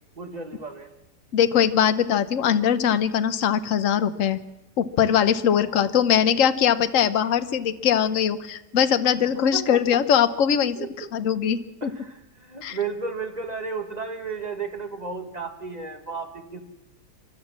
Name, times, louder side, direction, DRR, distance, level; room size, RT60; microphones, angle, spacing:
voice 1, 0.2-0.9 5.5-5.9 6.2-6.3 9.3-9.8 10.8-11.1 11.8-16.6, right 4 dB, 25° right, 5 dB, 2.0 m, -34 dB
voice 2, 1.3-4.4 4.8-10.8 11.1-11.9 12.6-12.8, left 8 dB, 55° left, 11 dB, 1.2 m, -21 dB
28.5 x 12.5 x 7.4 m, 0.95 s
omnidirectional pair, 1.8 m